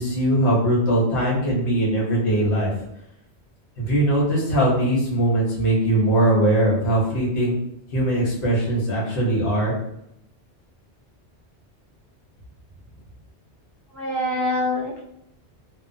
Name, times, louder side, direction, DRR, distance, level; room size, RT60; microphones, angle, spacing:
voice 1, 0.0-2.8 3.8-7.6 7.9-9.7, right 1 dB, 80° left, -4 dB, 1.2 m, -21 dB
voice 2, 13.9-15.0, left 1 dB, ahead, -6 dB, 0.4 m, -25 dB
2.9 x 2.2 x 2.6 m, 0.77 s
omnidirectional pair, 1.2 m